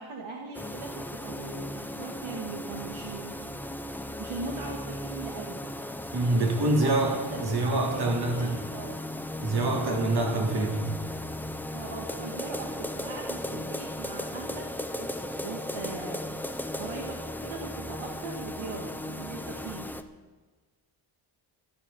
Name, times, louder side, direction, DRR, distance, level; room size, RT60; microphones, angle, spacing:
voice 1, 0.0-3.6 4.2-5.6 6.8-8.9 9.6-10.6 11.7-19.9, right 4 dB, 70° right, 0 dB, 2.1 m, -40 dB
sound 1, 0.5-20.0, left 1 dB, 5° left, 0.7 m, -36 dB
voice 2, 6.1-8.5 9.4-10.9, right 2 dB, 50° right, 1 dB, 3.3 m, -26 dB
13.5 x 11.0 x 7.1 m, 1.4 s
cardioid pair, 110°, 49 cm